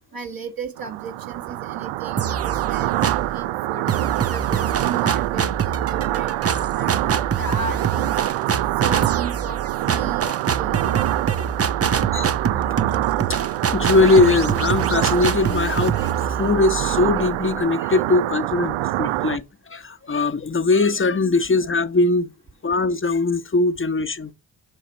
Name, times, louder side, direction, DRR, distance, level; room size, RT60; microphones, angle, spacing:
voice 1, 0.1-2.9 3.3-9.6 9.9-10.2 10.6-11.0, right 4 dB, 45° right, 1.6 m, -35 dB
sound 1, 0.8-19.4, right 16 dB, 75° right, 0.6 m, -25 dB
sound 2, 2.2-3.4 3.9-17.6, right 7 dB, 30° right, 0.7 m, -26 dB
voice 2, 13.7-22.3 22.6-24.3, left 3 dB, 25° left, 1.0 m, -20 dB
7.8 x 5.8 x 4.5 m
supercardioid pair, 45°, 48 cm